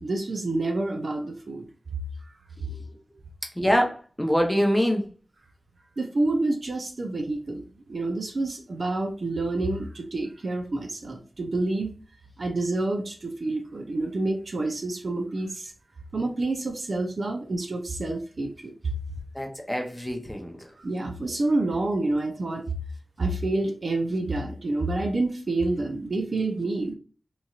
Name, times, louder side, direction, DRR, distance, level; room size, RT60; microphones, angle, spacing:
voice 1, 0.0-1.7 6.0-11.9 12.4-15.7 16.1-18.9 20.8-22.6 23.2-26.9, right 2 dB, 55° right, 0.5 m, -28 dB
voice 2, 3.5-5.0 19.3-20.7, equal, 10° left, 0.7 m, -25 dB
3.0 x 2.6 x 2.4 m
wide cardioid pair, 75°, 0 cm